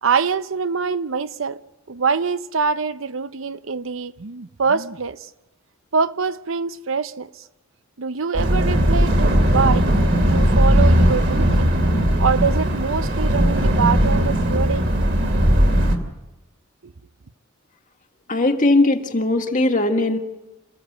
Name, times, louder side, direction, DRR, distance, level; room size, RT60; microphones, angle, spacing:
voice 1, 0.0-1.6 1.9-5.3 5.9-7.4 8.0-9.9 10.2-11.7 12.2-14.9 16.8-16.9, right 5 dB, 75° right, 0.8 m, -24 dB
sound 1, 8.3-16.0, equal, 55° right, 2.7 m, -18 dB
voice 2, 18.3-20.2, left 2 dB, 40° left, 1.8 m, -19 dB
27.5 x 15.5 x 8.0 m
head